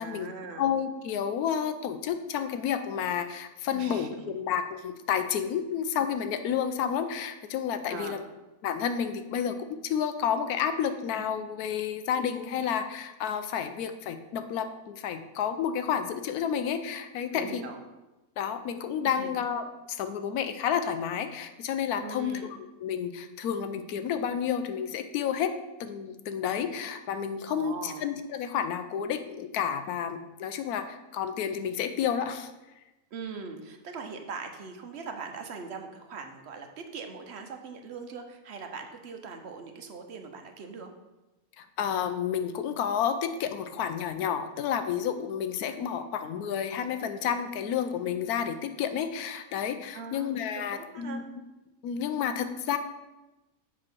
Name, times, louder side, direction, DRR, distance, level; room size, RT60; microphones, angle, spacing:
voice 1, 0.0-0.7 3.7-4.4 7.9-8.2 17.3-17.8 19.0-19.3 22.0-22.5 27.5-28.0 33.1-40.9 49.9-51.2, right 5 dB, 55° right, 5 dB, 1.0 m, -41 dB
voice 2, 0.6-8.2 8.6-9.6 9.8-17.6 18.4-22.4 22.8-25.5 25.8-32.5 41.6-51.2 51.8-52.8, left 8 dB, 85° left, 9 dB, 1.1 m, -30 dB
7.5 x 3.7 x 6.0 m, 1.0 s
omnidirectional pair, 1.5 m